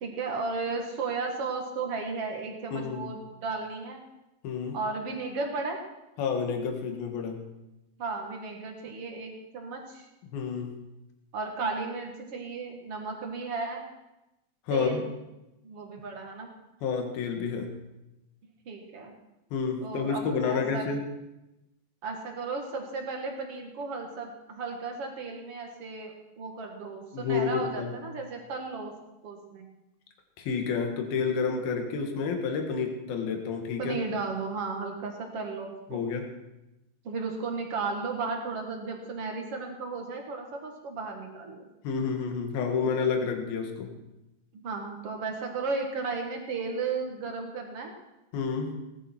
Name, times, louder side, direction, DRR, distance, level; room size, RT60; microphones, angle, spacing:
voice 1, 0.0-4.0 4.7-5.8 8.0-10.1 11.3-13.8 14.7-15.1 15.6-16.5 18.7-19.1 19.8-20.9 22.0-28.9 29.2-29.6 33.8-36.0 37.0-41.7 44.6-47.9, right 4 dB, 50° right, 2 dB, 1.9 m, -34 dB
voice 2, 2.7-3.1 4.4-4.8 6.2-7.5 10.3-10.8 14.7-15.1 16.8-17.8 19.5-21.0 27.1-27.9 30.4-34.0 35.9-36.3 41.8-44.0 48.3-48.8, left 5 dB, 65° left, 3 dB, 3.4 m, -30 dB
18.5 x 11.5 x 4.5 m, 0.96 s
omnidirectional pair, 4.9 m